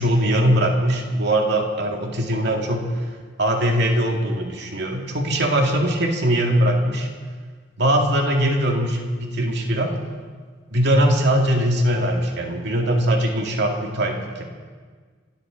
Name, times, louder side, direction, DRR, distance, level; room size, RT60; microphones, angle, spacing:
voice 1, 0.0-2.9 3.4-7.1 7.8-9.9 10.7-14.4, right 1 dB, 65° right, 2 dB, 2.2 m, -21 dB
27.0 x 13.0 x 3.9 m, 1.5 s
head